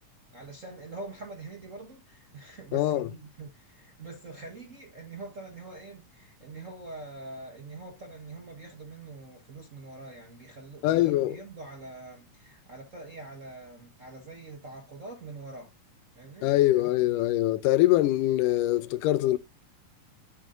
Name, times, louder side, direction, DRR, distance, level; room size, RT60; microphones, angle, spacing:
voice 1, 0.3-15.7 16.2-16.5, right 3 dB, 65° right, 0.7 m, -44 dB
voice 2, 2.7-3.1 10.8-11.4 16.4-19.4, left 15 dB, 85° left, 2.2 m, -23 dB
11.5 x 5.6 x 2.6 m
omnidirectional pair, 3.7 m